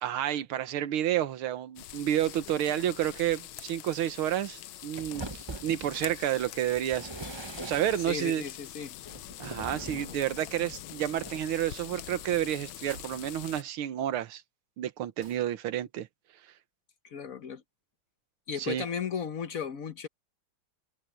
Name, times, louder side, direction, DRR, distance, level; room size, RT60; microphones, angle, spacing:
voice 1, 0.0-7.1 7.6-8.4 9.4-14.4 14.8-16.1 18.6-18.8, right 11 dB, 85° right, 1.8 m, -30 dB
sound 1, 1.8-13.6, left 13 dB, 80° left, 1.5 m, -44 dB
sound 2, 5.0-6.2 6.7-8.2 9.0-10.2 11.1-11.4, right 2 dB, 20° right, 0.7 m, -42 dB
voice 2, 8.1-8.9 17.0-17.6 18.5-20.1, left 7 dB, 55° left, 1.1 m, -35 dB
sound 3, 12.9-13.2 15.2-15.5, right 4 dB, 60° right, 3.1 m, -50 dB
omnidirectional pair, 2.3 m